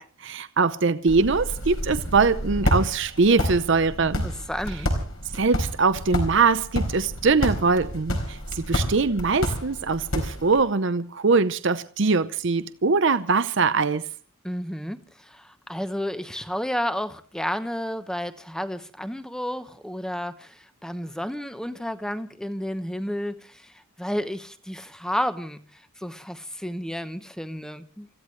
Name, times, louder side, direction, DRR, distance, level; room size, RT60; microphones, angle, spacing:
voice 1, 0.0-4.3 5.3-14.0, right 4 dB, 60° right, 0.7 m, -22 dB
sound 1, 1.1-10.6, equal, 70° left, 4.2 m, -29 dB
voice 2, 4.0-5.0 14.4-28.1, equal, 5° left, 0.9 m, -32 dB
29.5 x 14.5 x 3.2 m
head